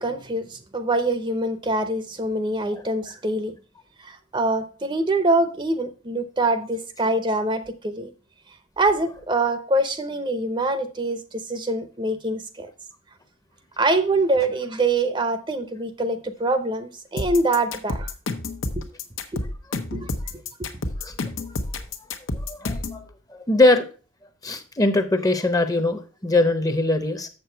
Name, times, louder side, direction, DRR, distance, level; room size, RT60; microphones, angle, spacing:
voice 1, 0.0-3.6 4.0-8.1 8.8-12.7 13.8-18.1 18.8-18.9 19.3-19.4 19.9-20.1 20.6-20.7, right 2 dB, 25° right, 0.7 m, -24 dB
sound 1, 17.2-23.0, left 2 dB, 85° left, 1.0 m, -29 dB
voice 2, 22.3-23.0 23.3-23.8 24.4-27.3, left 2 dB, 20° left, 0.7 m, -21 dB
7.4 x 6.8 x 4.5 m
head